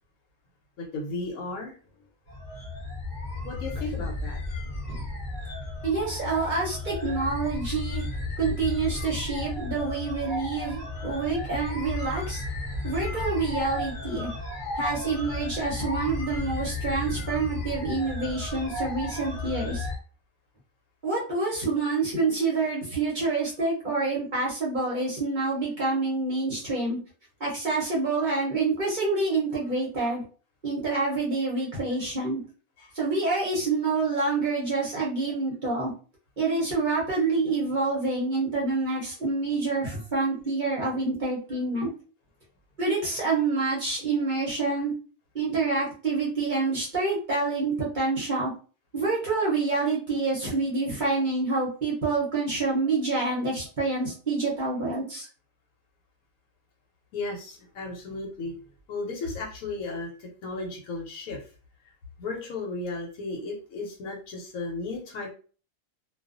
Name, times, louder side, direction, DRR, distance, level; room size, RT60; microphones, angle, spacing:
voice 1, 0.8-1.8 3.4-4.4 32.8-32.9 57.1-58.6 58.9-61.4 62.2-65.3, left 3 dB, 90° left, -1 dB, 1.1 m, -34 dB
sound 1, 2.3-20.0, left 2 dB, 45° left, 0.8 m, -34 dB
voice 2, 5.8-8.0 8.4-12.4 12.8-14.3 14.8-19.8 21.0-27.0 27.4-30.2 30.6-32.4 33.0-35.9 36.4-41.9 42.8-44.9 45.3-48.5 48.9-55.3, right 3 dB, 45° right, -5 dB, 0.8 m, -27 dB
2.4 x 2.3 x 2.4 m, 0.38 s
omnidirectional pair, 1.4 m